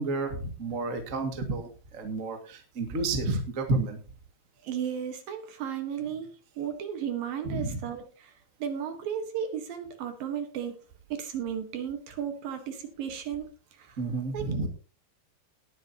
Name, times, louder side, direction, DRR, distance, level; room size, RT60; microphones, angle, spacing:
voice 1, 0.0-4.0 7.4-7.8 14.0-14.7, right 2 dB, 45° right, 4 dB, 1.0 m, -31 dB
voice 2, 4.6-8.3 8.6-10.8 11.1-13.5 13.8-14.0 14.3-14.5, right 8 dB, 65° right, 6 dB, 2.7 m, -34 dB
19.0 x 8.4 x 2.9 m, 0.35 s
omnidirectional pair, 5.2 m